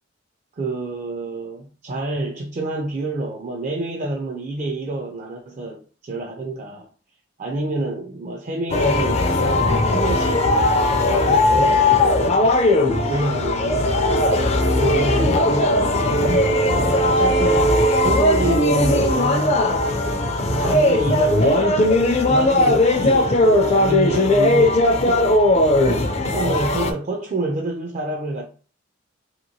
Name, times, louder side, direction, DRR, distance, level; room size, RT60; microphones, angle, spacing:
voice 1, 0.6-6.9 7.4-10.5 10.9-12.6 13.1-14.0 14.7-17.8 18.0-19.7 20.5-25.3 25.8-28.5, right 2 dB, 40° right, 0.4 m, -28 dB
sound 1, 8.7-26.9, left 1 dB, 35° left, 0.4 m, -18 dB
3.0 x 2.9 x 2.6 m
head